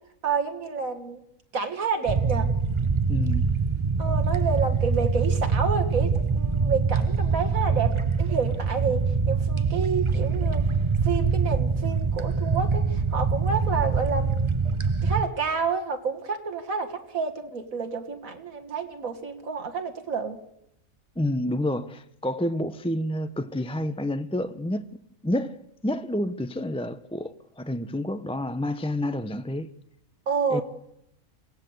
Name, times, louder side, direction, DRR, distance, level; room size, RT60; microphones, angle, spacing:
voice 1, 0.2-1.2 1.5-2.5 4.0-10.7 11.0-14.5 15.0-20.4 30.3-30.6, right 5 dB, 85° right, 2.2 m, -29 dB
sound 1, 2.1-15.2, right 4 dB, 25° right, 0.8 m, -24 dB
voice 2, 3.1-3.5 21.2-29.7 30.5-30.6, left 1 dB, 5° left, 0.5 m, -29 dB
27.5 x 17.5 x 7.9 m
omnidirectional pair, 1.4 m